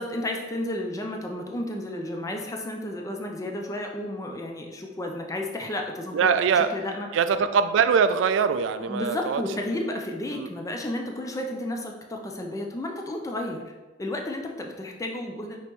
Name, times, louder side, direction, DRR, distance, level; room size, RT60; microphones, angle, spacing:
voice 1, 0.0-7.1 8.9-13.6 14.0-15.6, left 1 dB, 20° left, 2 dB, 0.4 m, -32 dB
voice 2, 6.1-6.7 7.1-9.4 10.3-10.5, right 6 dB, 90° right, 11 dB, 0.3 m, -22 dB
5.2 x 3.0 x 3.0 m, 1.2 s
head